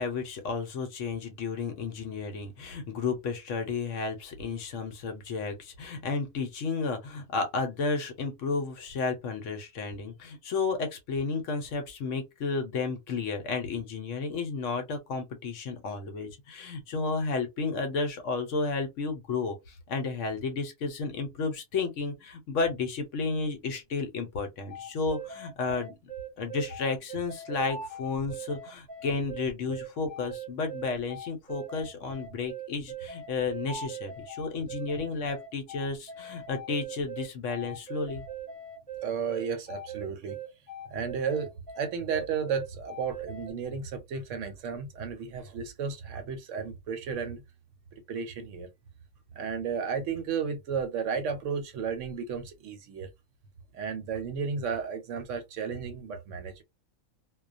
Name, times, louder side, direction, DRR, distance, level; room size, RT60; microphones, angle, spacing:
voice 1, 0.0-25.9 26.4-38.2, left 4 dB, 70° left, 1.0 m, -32 dB
sound 1, 24.7-43.5, right 4 dB, 10° left, 0.6 m, -40 dB
voice 2, 39.0-40.4 40.9-47.4 47.9-48.7 49.3-53.1 53.7-56.6, right 6 dB, 70° right, 0.9 m, -33 dB
2.3 x 2.2 x 2.5 m
omnidirectional pair, 1.4 m